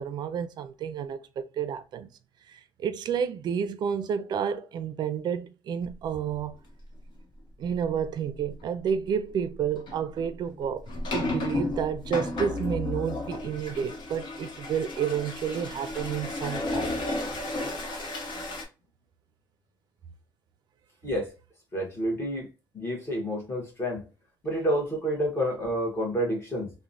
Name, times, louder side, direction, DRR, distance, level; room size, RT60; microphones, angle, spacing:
voice 1, 0.0-2.1 2.5-6.6 7.6-16.9, right 7 dB, 60° right, 0.4 m, -30 dB
sound 1, 7.8-7.9 8.4-8.6 9.8-18.6, left 2 dB, 65° left, 0.9 m, -33 dB
voice 2, 21.7-22.5 22.7-24.1 24.4-26.7, equal, 30° left, 1.1 m, -29 dB
3.0 x 2.1 x 2.5 m
cardioid pair, 155°, 8 cm